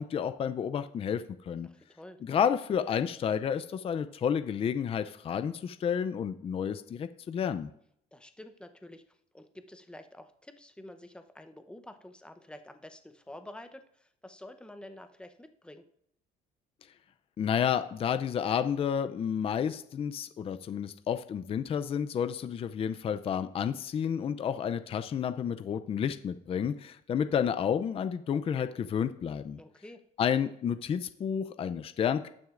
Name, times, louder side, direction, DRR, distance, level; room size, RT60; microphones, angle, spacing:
voice 1, 0.0-1.7 2.2-7.7 17.4-29.6 30.2-32.3, left 8 dB, 35° left, 10 dB, 0.4 m, -30 dB
voice 2, 1.6-2.2 8.1-15.9 29.6-30.0, left 1 dB, 5° left, 8 dB, 0.7 m, -49 dB
18.5 x 6.2 x 2.5 m, 0.72 s
cardioid pair, 110°, 17 cm